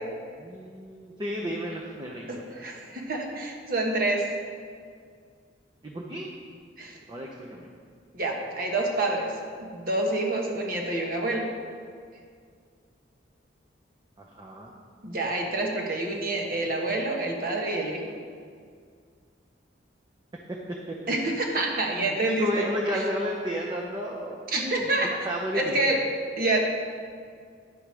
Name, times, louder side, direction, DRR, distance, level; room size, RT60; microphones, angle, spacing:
voice 1, 0.4-2.4 5.8-6.3 7.1-7.7 14.2-14.7 20.9-21.2 22.0-25.9, equal, 25° right, -2 dB, 0.7 m, -33 dB
voice 2, 2.3-4.3 6.8-7.0 8.1-9.3 9.6-11.5 15.0-18.0 21.1-23.0 24.5-25.1 25.5-26.0 26.4-26.6, right 2 dB, 50° right, 0 dB, 1.3 m, -27 dB
9.9 x 5.0 x 6.2 m, 2.1 s
head